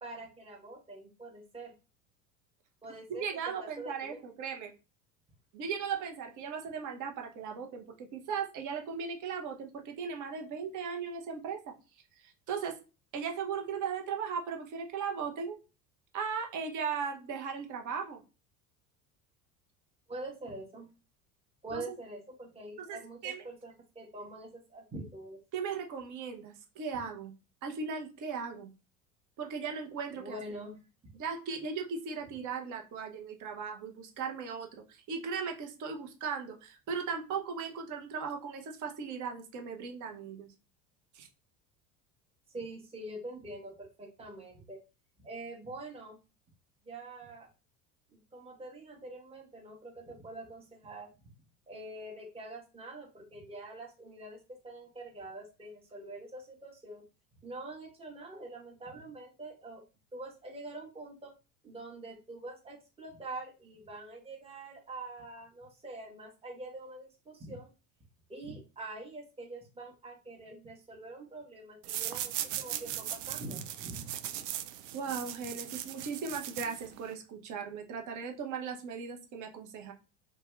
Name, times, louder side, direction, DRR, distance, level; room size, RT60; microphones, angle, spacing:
voice 1, 0.0-1.7 2.8-4.2 20.1-20.9 21.6-25.4 30.2-30.8 42.5-44.8 45.2-46.2 46.8-47.5 48.1-51.3 51.7-57.0 57.4-59.8 60.1-61.3 61.6-67.7 68.3-74.2, right 2 dB, 15° right, -2 dB, 1.0 m, -45 dB
voice 2, 3.1-4.7 5.5-11.7 12.2-12.8 13.1-15.6 16.1-18.2 21.7-22.0 22.8-23.0 23.2-23.4 25.5-27.3 27.6-28.7 29.4-30.4 31.1-40.5 41.1-41.3 74.9-79.9, right 6 dB, 45° right, 3 dB, 0.9 m, -37 dB
sound 1, 71.8-77.1, right 12 dB, 60° right, 0.5 m, -38 dB
2.6 x 2.3 x 3.2 m, 0.30 s
hypercardioid pair, 75°, 43 cm